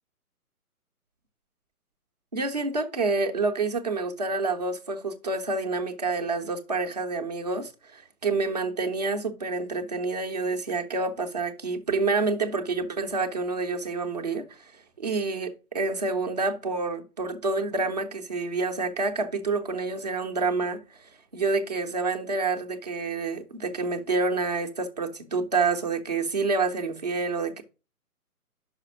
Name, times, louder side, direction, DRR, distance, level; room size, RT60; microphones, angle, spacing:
voice 1, 2.3-21.0 21.3-27.6, right 3 dB, 30° right, 0.5 m, -28 dB
5.7 x 4.6 x 5.9 m
hypercardioid pair, 160°, 45 cm